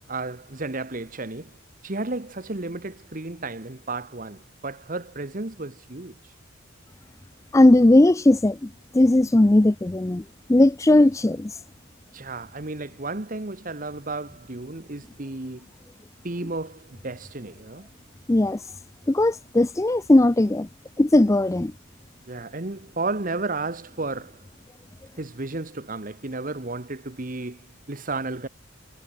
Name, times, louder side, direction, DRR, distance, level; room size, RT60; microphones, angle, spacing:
voice 1, 0.1-1.5 1.8-6.3 12.1-15.7 16.2-17.9 22.3-24.4 25.2-28.5, right 3 dB, 40° right, 1.2 m, -33 dB
voice 2, 7.5-10.2 10.5-11.5 18.3-18.6 19.1-20.7 21.0-21.7, left 1 dB, 15° left, 0.4 m, -18 dB
head